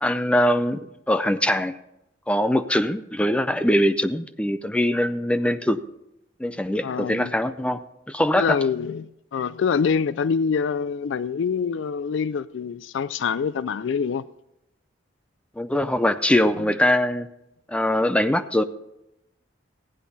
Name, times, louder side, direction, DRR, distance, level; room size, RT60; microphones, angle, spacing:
voice 1, 0.0-1.8 2.3-5.8 6.4-7.8 8.1-8.6 15.6-17.3 17.7-18.6, left 1 dB, 5° left, 0.4 m, -22 dB
voice 2, 6.8-7.3 8.4-14.2, left 6 dB, 80° left, 0.4 m, -25 dB
15.5 x 10.0 x 4.1 m
head